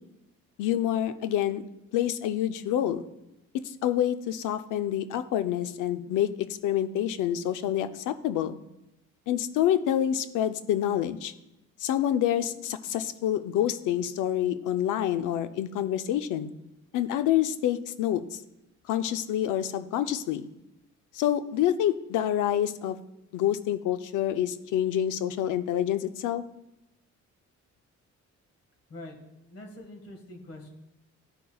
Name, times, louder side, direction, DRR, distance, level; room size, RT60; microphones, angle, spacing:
voice 1, 0.6-1.6 1.9-3.0 3.5-8.6 9.3-11.3 11.8-16.5 16.9-18.4 18.9-20.5 21.1-23.0 23.3-26.4, left 11 dB, 85° left, 11 dB, 0.6 m, -27 dB
voice 2, 29.5-30.7, left 1 dB, 50° left, 3 dB, 1.8 m, -44 dB
13.5 x 5.3 x 2.3 m, 0.90 s
cardioid pair, 90°, 30 cm